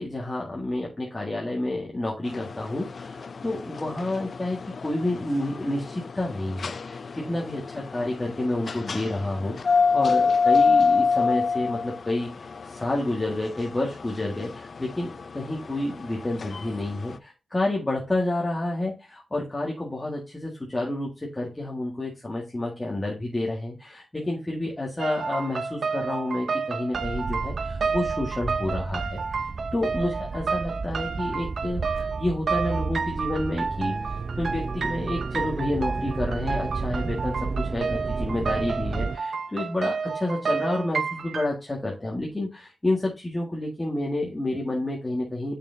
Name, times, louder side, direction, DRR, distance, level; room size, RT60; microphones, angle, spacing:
voice 1, 0.0-29.2 29.7-33.9 34.4-45.6, left 1 dB, 20° left, -4 dB, 1.7 m, -29 dB
sound 1, 2.3-17.2, left 5 dB, 55° left, 0.4 m, -28 dB
sound 2, 25.0-41.5, right 5 dB, 70° right, 0.7 m, -31 dB
sound 3, 26.9-39.2, right 4 dB, 45° right, 0.3 m, -32 dB
6.5 x 5.9 x 2.7 m, 0.28 s
wide cardioid pair, 95°, 0 cm